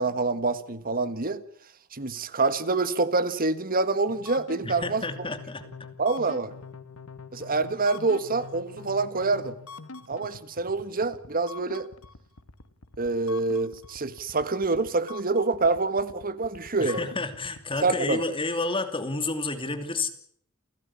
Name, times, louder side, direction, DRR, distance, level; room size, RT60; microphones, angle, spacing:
voice 1, 0.0-1.4 1.9-5.0 6.0-6.5 7.3-9.6 10.1-11.9 13.0-17.1 17.8-18.2, right 3 dB, 40° right, 13 dB, 1.6 m, -26 dB
sound 1, 4.1-17.9, left 4 dB, 75° left, 1.7 m, -45 dB
voice 2, 4.6-5.6 16.8-20.1, left 3 dB, 25° left, 8 dB, 2.7 m, -30 dB
29.5 x 14.5 x 8.6 m, 0.65 s
head